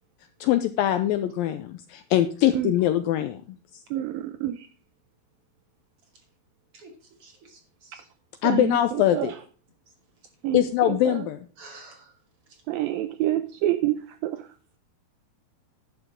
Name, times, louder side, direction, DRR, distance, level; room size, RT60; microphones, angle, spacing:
voice 1, 0.4-3.4 8.4-9.3 10.5-11.4, left 12 dB, 80° left, 2.1 m, -23 dB
voice 2, 3.9-4.7 7.9-8.0 8.4-9.4 10.4-11.3 12.7-14.6, right 13 dB, 80° right, 2.2 m, -28 dB
voice 3, 7.2-8.1 11.6-12.2 12.5-12.6, right 3 dB, 40° right, 3.0 m, -49 dB
11.0 x 11.0 x 3.7 m
omnidirectional pair, 4.7 m